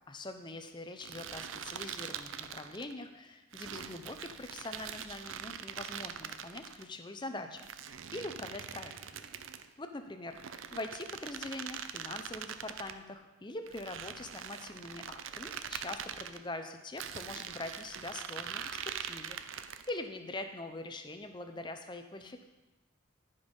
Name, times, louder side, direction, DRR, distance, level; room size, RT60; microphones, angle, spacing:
voice 1, 0.1-9.3 9.8-19.4 19.9-22.4, left 2 dB, 20° left, 7 dB, 0.7 m, -43 dB
sound 1, 1.0-2.9 3.5-6.8 7.6-9.7 10.3-13.0 13.7-16.4 17.0-20.0, right 8 dB, 75° right, 0.5 m, -43 dB
13.5 x 5.4 x 5.4 m, 1.1 s
head